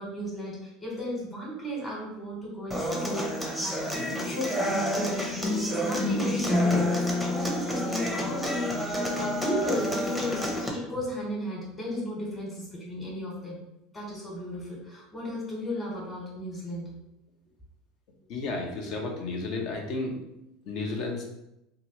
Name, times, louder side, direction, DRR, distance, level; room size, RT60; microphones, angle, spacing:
voice 1, 0.0-3.8 4.2-10.4 10.7-13.6 13.9-16.9, equal, 20° left, -4 dB, 1.2 m, -35 dB
Human voice / Acoustic guitar, 2.7-10.7, left 1 dB, 5° left, 0.7 m, -28 dB
voice 2, 18.3-20.2 20.7-21.2, left 3 dB, 60° left, 1 dB, 0.7 m, -32 dB
2.9 x 2.4 x 3.0 m, 0.84 s
hypercardioid pair, 80°, 0 cm